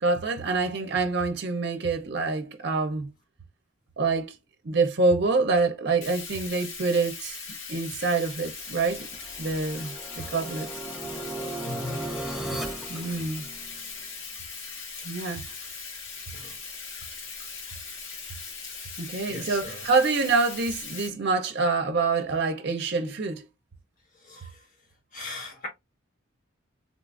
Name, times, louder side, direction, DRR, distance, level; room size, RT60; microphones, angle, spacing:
voice 1, 0.0-3.1 4.0-4.3 4.6-7.4 7.7-9.1 9.4-10.7 12.9-13.5 15.0-15.4 19.0-23.5 24.4-24.5, right 3 dB, 55° right, 0.5 m, -26 dB
Bathtub (filling or washing), 6.0-21.1, left 5 dB, 75° left, 1.2 m, -40 dB
sound 1, 8.8-14.0, right 2 dB, ahead, 0.4 m, -37 dB
voice 2, 11.6-12.1 16.3-16.6 19.3-19.8 24.2-24.7 25.1-25.7, left 2 dB, 40° left, 1.4 m, -39 dB
3.7 x 2.4 x 2.4 m
head